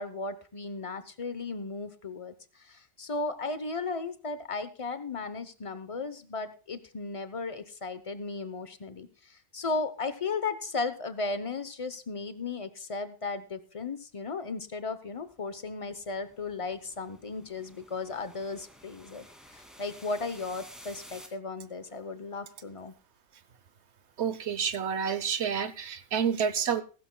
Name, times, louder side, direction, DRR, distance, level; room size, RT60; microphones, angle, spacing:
voice 1, 0.0-2.3 2.7-9.1 9.5-19.2 19.5-22.9, left 3 dB, 30° left, 12 dB, 0.8 m, -35 dB
sound 1, 15.3-21.3, equal, ahead, 2.4 m, -52 dB
voice 2, 24.2-26.8, right 7 dB, 60° right, 14 dB, 1.1 m, -29 dB
16.5 x 15.0 x 2.3 m, 0.36 s
omnidirectional pair, 1.3 m